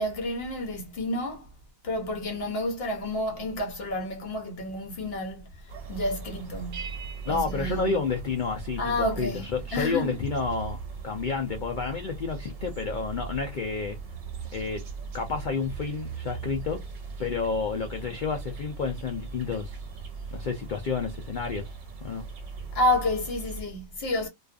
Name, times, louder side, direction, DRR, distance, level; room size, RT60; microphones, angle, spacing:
voice 1, 0.0-1.5 1.8-7.0 7.3-8.0 8.8-10.2 22.7-24.3, left 1 dB, 55° left, 0.8 m, -30 dB
sound 1, 5.7-23.6, right 5 dB, 70° right, 1.2 m, -39 dB
sound 2, 6.7-8.9, right 6 dB, 55° right, 0.8 m, -45 dB
voice 2, 7.3-10.8 11.0-14.0 14.5-14.8 15.1-16.8 17.2-19.8 20.3-21.7 22.0-22.2, left 5 dB, 85° left, 0.4 m, -30 dB
2.4 x 2.3 x 2.3 m
omnidirectional pair, 1.5 m